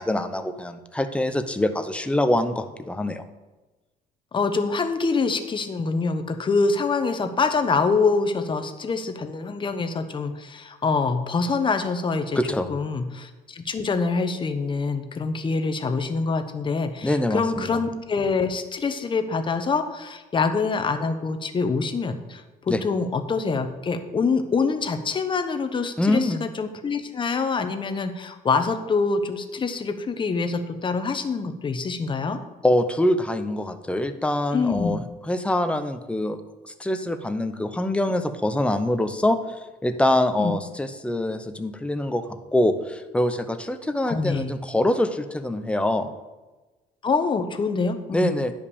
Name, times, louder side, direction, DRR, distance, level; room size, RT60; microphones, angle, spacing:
voice 1, 0.0-3.2 12.3-12.7 17.0-17.8 22.7-22.8 26.0-26.4 32.6-36.4 36.6-39.4 39.8-46.1 48.1-48.5, left 1 dB, 5° left, 8 dB, 0.8 m, -24 dB
voice 2, 4.3-12.4 12.7-32.4 34.5-35.0 40.4-40.5 44.1-44.5 47.0-48.3, left 4 dB, 30° left, 8 dB, 1.0 m, -25 dB
9.9 x 5.3 x 6.9 m, 1.2 s
cardioid pair, 110°, 17 cm